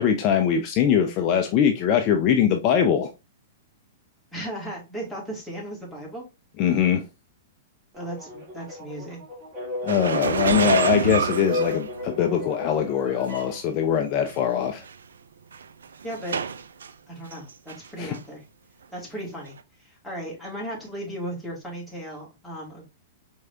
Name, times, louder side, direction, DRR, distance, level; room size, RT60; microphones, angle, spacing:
voice 1, 0.0-3.1 6.6-7.0 9.8-14.8 18.0-18.1, left 8 dB, 40° left, 0.6 m, -22 dB
voice 2, 4.3-6.2 7.9-9.2 16.0-16.5 17.1-18.4 18.9-22.8, right 1 dB, ahead, 2.5 m, -36 dB
sound 1, 7.9-13.6, left 2 dB, 35° right, 2.2 m, -35 dB
sound 2, 9.9-12.5 13.3-13.4 14.3-14.4 14.6-14.9 15.5-16.9 17.3-17.9 18.1-18.2 19.5-19.6, right 6 dB, 75° right, 0.4 m, -27 dB
4.6 x 3.6 x 2.8 m
hypercardioid pair, 110°, 0 cm